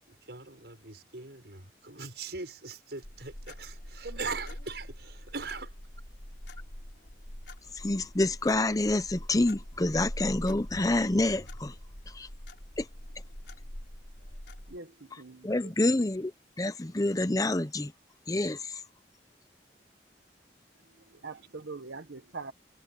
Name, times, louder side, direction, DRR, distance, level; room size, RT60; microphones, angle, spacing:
voice 1, 0.1-5.8, right 4 dB, 70° right, 6.3 m, -41 dB
sound 1, 3.0-14.8, left 1 dB, 70° left, 3.9 m, -44 dB
voice 2, 4.0-4.4 14.7-15.7 20.9-22.5, right 4 dB, 85° right, 1.1 m, -42 dB
voice 3, 7.8-11.7 12.1-12.3 12.8-12.9 15.4-16.3 16.6-17.9 18.3-18.8, left 2 dB, 20° left, 0.7 m, -27 dB
head